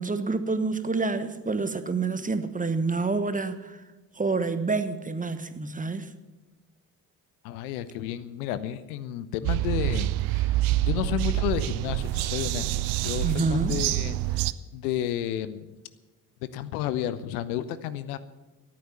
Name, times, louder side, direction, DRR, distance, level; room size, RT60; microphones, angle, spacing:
voice 1, 0.0-3.8 4.2-6.1 13.2-13.8, right 3 dB, 15° right, 11 dB, 1.2 m, -28 dB
voice 2, 7.4-12.7 13.0-14.5 14.7-15.7 16.5-18.2, left 11 dB, 65° left, 14 dB, 0.9 m, -32 dB
sound 1, 9.4-14.5, right 16 dB, 50° right, 0.7 m, -26 dB
13.5 x 12.0 x 7.1 m, 1.2 s
figure-of-eight pair, 50°, 48 cm